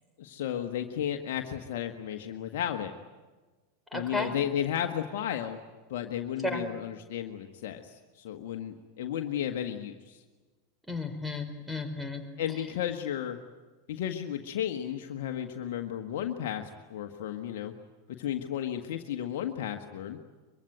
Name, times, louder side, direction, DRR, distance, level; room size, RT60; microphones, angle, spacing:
voice 1, 0.2-2.9 3.9-5.6 5.9-10.2 12.4-13.4 13.9-17.7 18.2-20.2, left 10 dB, 60° left, 5 dB, 1.6 m, -33 dB
voice 2, 3.9-4.3 6.4-6.6 10.9-12.2, left 2 dB, ahead, 8 dB, 4.5 m, -33 dB
24.0 x 23.5 x 9.3 m, 1.3 s
figure-of-eight pair, 85°, 0 cm